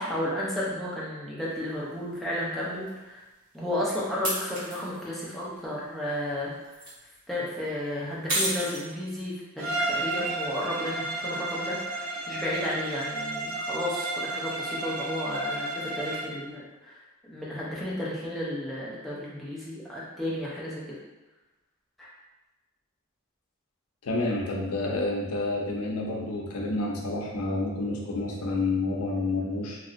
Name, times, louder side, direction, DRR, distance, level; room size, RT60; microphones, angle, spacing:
voice 1, 0.0-3.2 3.5-6.8 7.3-20.8 22.0-22.1, left 1 dB, ahead, -7 dB, 0.6 m, -33 dB
sound 1, 1.5-1.6 2.9-3.0 4.2-5.0 6.5-6.9 8.3-9.2, right 1 dB, 40° right, 1.2 m, -30 dB
Bowed string instrument, 9.6-16.4, right 2 dB, 70° right, 0.4 m, -32 dB
voice 2, 24.0-29.8, left 2 dB, 90° left, -1 dB, 0.6 m, -29 dB
3.0 x 2.6 x 2.5 m, 1.1 s
head